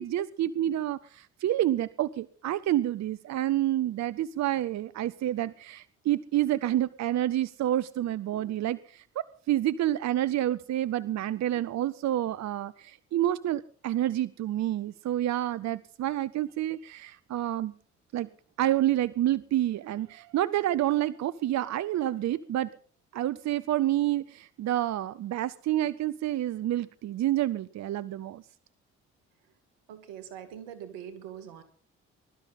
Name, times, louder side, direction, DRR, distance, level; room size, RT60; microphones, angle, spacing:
voice 1, 0.0-17.7 18.1-18.3 18.6-22.7 23.1-28.4, right 13 dB, 60° right, 18 dB, 0.6 m, -28 dB
voice 2, 29.9-31.6, right 9 dB, 85° right, 11 dB, 1.9 m, -43 dB
21.5 x 12.5 x 4.0 m, 0.44 s
hypercardioid pair, 50°, 32 cm